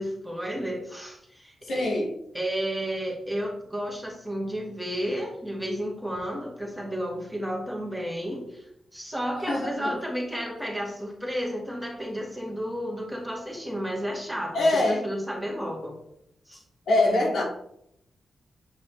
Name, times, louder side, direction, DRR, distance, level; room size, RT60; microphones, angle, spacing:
voice 1, 0.0-1.9 2.3-8.6 8.9-16.0 16.5-16.6, equal, 5° right, -1 dB, 2.0 m, -32 dB
voice 2, 1.7-2.1 9.5-9.9 14.5-15.0 16.9-17.4, left 2 dB, 85° left, -3 dB, 2.4 m, -23 dB
7.7 x 5.8 x 3.3 m, 0.75 s
cardioid pair, 90°, 0 cm